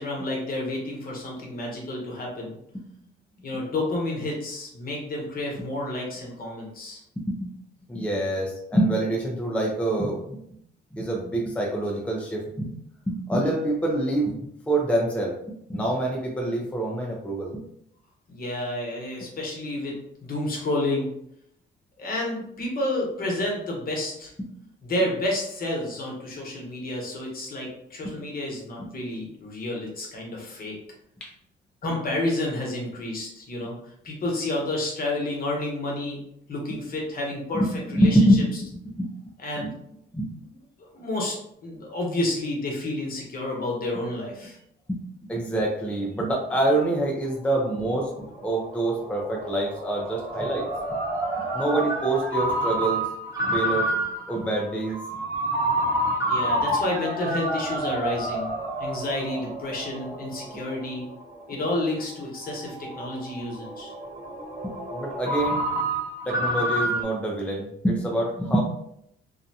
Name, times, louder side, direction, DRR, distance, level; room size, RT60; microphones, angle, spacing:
voice 1, 0.0-2.6 3.4-7.0 18.3-19.9 20.2-21.1 22.0-24.3 24.8-30.8 31.8-36.2 36.5-37.6 37.9-38.2 39.4-39.7 40.8-41.4 41.6-44.6 56.2-58.5 58.8-61.0 61.5-63.9, left 1 dB, 50° left, -2 dB, 1.0 m, -30 dB
voice 2, 7.9-10.4 10.9-12.7 13.1-14.4 14.7-15.3 15.7-17.6 28.0-28.1 31.2-31.3 37.5-37.7 37.9-38.4 38.9-39.1 39.6-39.7 40.1-40.3 44.9-45.0 45.3-50.7 51.5-53.0 53.4-53.9 54.3-55.0 64.6-65.6 66.3-68.6, right 1 dB, 5° left, -2 dB, 0.5 m, -25 dB
Ringtone, 47.3-67.0, right 1 dB, 15° right, 0.9 m, -29 dB
2.6 x 2.1 x 2.7 m, 0.74 s
cardioid pair, 90°, 20 cm